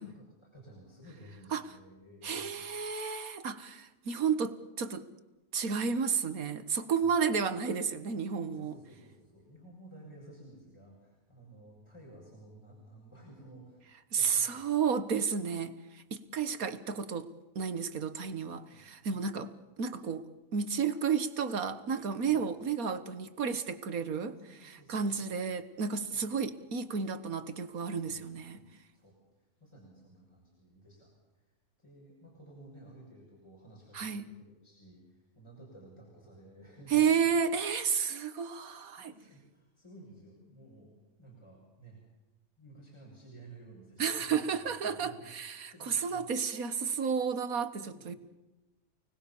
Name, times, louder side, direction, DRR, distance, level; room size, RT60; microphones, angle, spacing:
voice 1, 0.0-2.7 7.0-7.1 8.5-13.8 14.1-14.6 18.6-19.3 22.3-22.4 24.2-25.6 26.1-26.2 28.0-28.2 28.5-28.7 28.9-37.3 38.7-42.0 42.6-45.3 45.6-46.2 47.8-48.2, right 1 dB, 20° left, 6.6 m, -54 dB
voice 2, 2.2-5.1 5.5-8.7 14.1-17.3 17.6-19.5 19.8-20.3 20.5-24.4 24.6-28.6 33.9-34.3 36.9-39.1 44.0-48.2, right 6 dB, 75° right, 1.9 m, -32 dB
29.5 x 20.0 x 7.2 m
omnidirectional pair, 1.5 m